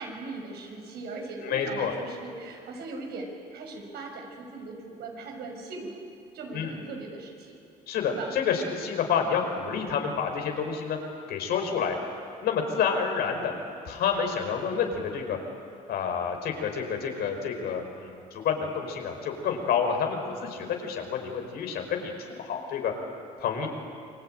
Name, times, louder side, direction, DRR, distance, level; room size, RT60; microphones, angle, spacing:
voice 1, 0.0-6.0 6.3-7.6 8.1-8.3 23.6-23.7, right 3 dB, 75° right, 2 dB, 6.9 m, -39 dB
voice 2, 1.4-1.9 6.5-6.8 7.9-11.0 11.3-12.0 12.4-13.5 13.8-15.4 15.9-22.9 23.4-23.7, left 6 dB, 70° left, 3 dB, 5.1 m, -29 dB
28.5 x 23.0 x 9.1 m, 2.6 s
cardioid pair, 110°, 17 cm